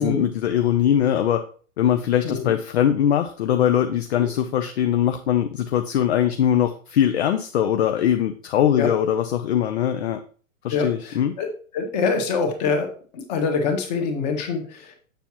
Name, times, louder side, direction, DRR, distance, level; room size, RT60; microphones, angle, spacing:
voice 1, 0.0-1.4 1.8-10.2 10.6-11.3, left 10 dB, 55° left, 7 dB, 0.6 m, -21 dB
voice 2, 2.2-2.5 4.2-4.3 8.8-8.9 10.7-11.5 11.7-12.9 13.1-15.0, left 5 dB, 30° left, 4 dB, 1.4 m, -25 dB
7.1 x 6.9 x 2.9 m, 0.42 s
hypercardioid pair, 170°, 40 cm